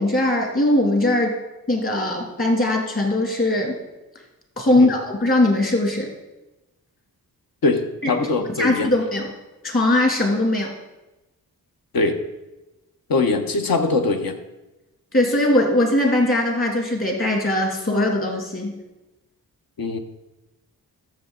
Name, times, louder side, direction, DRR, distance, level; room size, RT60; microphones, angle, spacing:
voice 1, 0.0-1.4 1.7-3.8 4.6-6.1 8.0-8.1 8.6-9.3 9.6-10.7 15.1-18.8, left 1 dB, 35° left, 1 dB, 2.6 m, -20 dB
voice 2, 8.1-8.9 11.9-12.2 13.1-14.4 19.8-20.0, left 3 dB, 65° left, 6 dB, 1.2 m, -21 dB
14.0 x 6.7 x 4.0 m, 1.0 s
cardioid pair, 80°, 37 cm